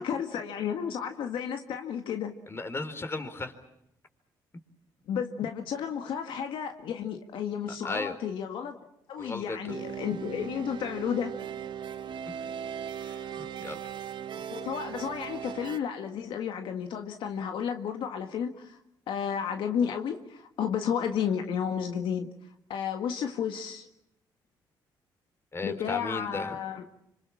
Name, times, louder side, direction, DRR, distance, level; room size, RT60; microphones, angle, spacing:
voice 1, 0.0-2.3 5.1-8.8 9.1-11.3 14.5-18.8 19.1-22.3 22.7-23.9 25.6-26.8, left 8 dB, 75° left, 5 dB, 1.8 m, -32 dB
voice 2, 2.5-3.5 7.8-8.1 9.2-9.7 13.0-13.8 25.5-26.6, left 3 dB, 30° left, 9 dB, 4.2 m, -35 dB
sound 1, 9.7-15.8, right 8 dB, 65° right, 1.3 m, -38 dB
26.5 x 26.5 x 7.3 m, 0.81 s
cardioid pair, 75°, 8 cm